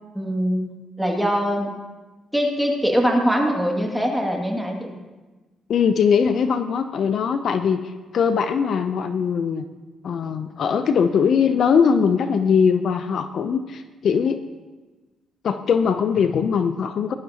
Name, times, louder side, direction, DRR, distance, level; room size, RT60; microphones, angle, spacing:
voice 1, 0.1-0.7 1.0-1.7 2.3-4.9, equal, ahead, 0 dB, 2.3 m, -22 dB
voice 2, 5.7-7.8 8.1-9.6 10.0-14.4 15.4-17.1, left 6 dB, 60° left, 9 dB, 0.6 m, -21 dB
18.5 x 12.0 x 2.9 m, 1.2 s
cardioid pair, 90°, 0 cm